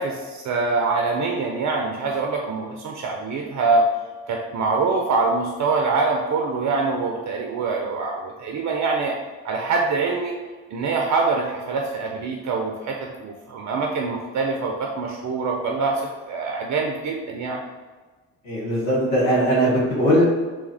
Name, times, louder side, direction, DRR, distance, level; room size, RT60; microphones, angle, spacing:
voice 1, 0.0-3.8 4.3-9.1 9.4-10.3 10.7-17.6, right 4 dB, 45° right, 1 dB, 0.6 m, -24 dB
voice 2, 18.4-20.2, equal, 80° left, -6 dB, 1.2 m, -19 dB
3.5 x 3.3 x 3.3 m, 1.3 s
hypercardioid pair, 50°, 39 cm